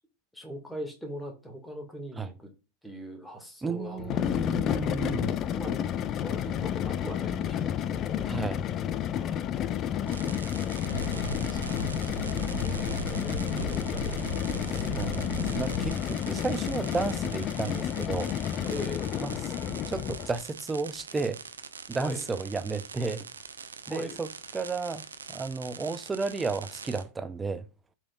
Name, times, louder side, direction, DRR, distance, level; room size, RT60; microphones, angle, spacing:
voice 1, 0.3-2.5 2.8-4.6 5.6-8.3 9.1-9.7 10.0-15.0 18.7-19.1 22.0-22.2 23.9-24.2, equal, 5° left, 1.9 m, -42 dB
voice 2, 3.6-5.3 8.3-8.6 14.7-18.3 19.2-19.4 19.7-21.4 21.9-23.3 23.9-27.6, right 4 dB, 15° right, 0.6 m, -33 dB
sound 1, 4.0-20.4, left 10 dB, 30° left, 0.5 m, -31 dB
sound 2, 10.1-27.0, right 6 dB, 70° right, 0.8 m, -44 dB
sound 3, 10.8-15.9, equal, 85° left, 1.1 m, -36 dB
13.0 x 4.6 x 2.4 m
figure-of-eight pair, 90°, 0 cm